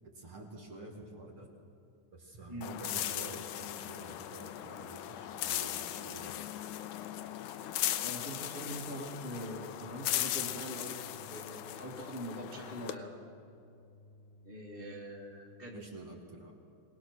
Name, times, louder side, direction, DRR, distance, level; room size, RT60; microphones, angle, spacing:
voice 1, 0.0-1.5 2.1-6.3 15.7-16.5, right 2 dB, 45° right, 0 dB, 2.5 m, -48 dB
sound 1, 2.6-13.0, left 12 dB, 75° left, 2.0 m, -38 dB
voice 2, 7.6-13.2 14.4-15.8, equal, 25° left, -3 dB, 1.2 m, -43 dB
sound 2, 9.4-15.4, left 1 dB, 60° left, 0.6 m, -58 dB
23.0 x 18.5 x 6.3 m, 2.6 s
omnidirectional pair, 3.9 m